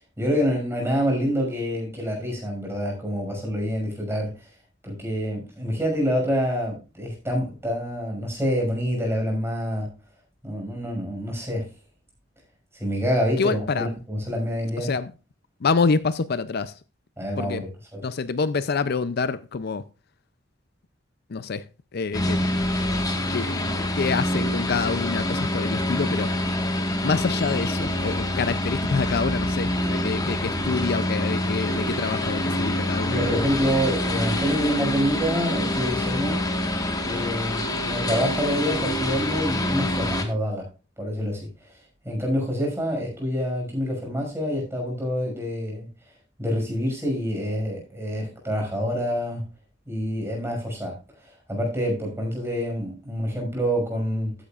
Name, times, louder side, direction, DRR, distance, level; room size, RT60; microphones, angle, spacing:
voice 1, 0.2-4.5 4.8-9.9 10.4-11.7 12.7-14.9 17.2-17.7 17.9-18.0 33.0-36.4 37.0-40.6 41.0-41.4 42.0-45.9 46.4-49.4 49.9-50.9 51.5-54.3, equal, 15° right, 5.9 m, -27 dB
voice 2, 13.4-13.9 14.8-15.1 15.6-16.7 17.4-17.6 18.0-19.8 21.3-21.6 21.9-22.7 23.3-23.6 23.9-26.3 27.0-33.5, left 4 dB, 55° left, 0.5 m, -27 dB
sound 1, 22.1-40.2, left 1 dB, 20° left, 1.5 m, -26 dB
14.0 x 10.5 x 2.4 m
head